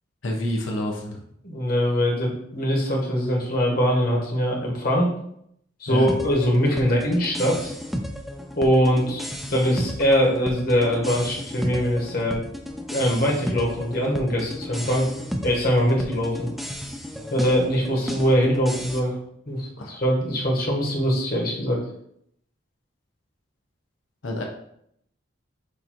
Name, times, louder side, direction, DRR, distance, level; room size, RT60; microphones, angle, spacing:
voice 1, 0.2-1.2 5.9-6.1 19.8-20.0 24.2-24.4, equal, 90° left, 1 dB, 0.7 m, -28 dB
voice 2, 1.4-5.1 5.8-7.7 8.6-12.4 12.9-15.1 15.4-16.5 17.3-19.2 19.5-21.8, equal, 50° left, -2 dB, 1.1 m, -22 dB
sound 1, 6.1-19.0, equal, ahead, 0.3 m, -34 dB
6.5 x 2.6 x 2.9 m, 0.72 s
head